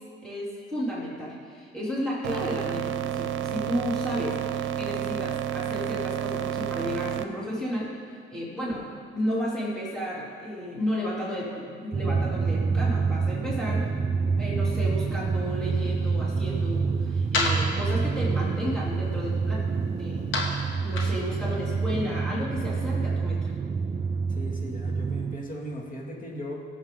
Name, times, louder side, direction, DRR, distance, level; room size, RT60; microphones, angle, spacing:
voice 1, 0.2-8.0 8.3-8.9 9.1-13.9 14.2-20.3 20.8-23.5, equal, 5° left, -7 dB, 3.6 m, -33 dB
sound 1, 2.2-7.2, right 11 dB, 75° right, 0.6 m, -30 dB
Drum, 11.9-25.4, right 4 dB, 30° right, 0.6 m, -27 dB
sound 2, 15.5-21.9, left 2 dB, 80° left, 2.1 m, -35 dB
voice 2, 24.3-26.6, equal, 45° left, -1 dB, 2.5 m, -37 dB
18.5 x 7.8 x 4.0 m, 2.2 s
cardioid pair, 90°, 20 cm